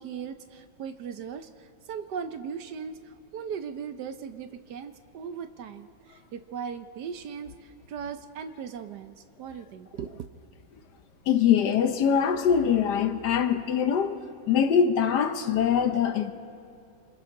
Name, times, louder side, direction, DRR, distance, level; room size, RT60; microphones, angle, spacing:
voice 1, 0.0-10.3, right 7 dB, 65° right, 1.2 m, -38 dB
voice 2, 11.3-16.3, left 8 dB, 65° left, 1.3 m, -23 dB
27.5 x 25.5 x 3.8 m
omnidirectional pair, 2.1 m